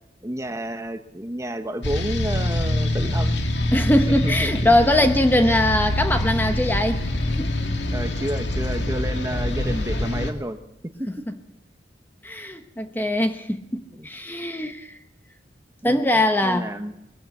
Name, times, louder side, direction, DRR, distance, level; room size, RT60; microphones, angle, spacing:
voice 1, 0.2-3.4 4.1-4.7 5.4-5.7 7.9-10.6 11.0-11.1 13.9-14.1 15.8-16.1 16.4-16.9, right 1 dB, 15° right, 8 dB, 1.1 m, -30 dB
sound 1, 1.8-10.3, left 1 dB, 75° left, 2.1 m, -25 dB
voice 2, 3.7-7.0 7.4-7.6 12.2-15.0 15.8-16.7, left 1 dB, 10° left, 7 dB, 1.0 m, -21 dB
21.0 x 15.0 x 8.2 m, 0.83 s
head